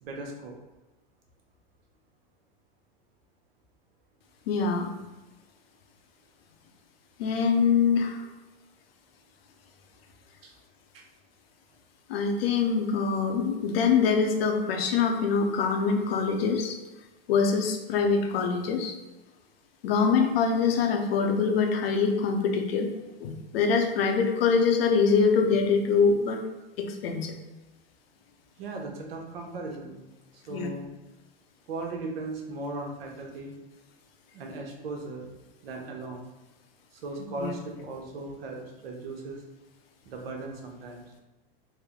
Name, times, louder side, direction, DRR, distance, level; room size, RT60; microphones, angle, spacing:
voice 1, 0.0-0.6 10.4-10.5 10.9-11.1 28.6-30.0 30.3-30.9 31.7-33.6 34.3-35.3 35.6-36.2 36.9-39.4 40.1-41.0, right 2 dB, 75° right, 1 dB, 0.9 m, -37 dB
voice 2, 4.5-4.9 7.2-8.3 12.1-16.8 17.3-19.0 19.8-22.9 23.2-26.4 26.8-27.3 30.5-30.7 37.4-37.5, left 5 dB, 80° left, 3 dB, 0.7 m, -24 dB
3.4 x 2.1 x 3.6 m, 1.1 s
hypercardioid pair, 120°, 30 cm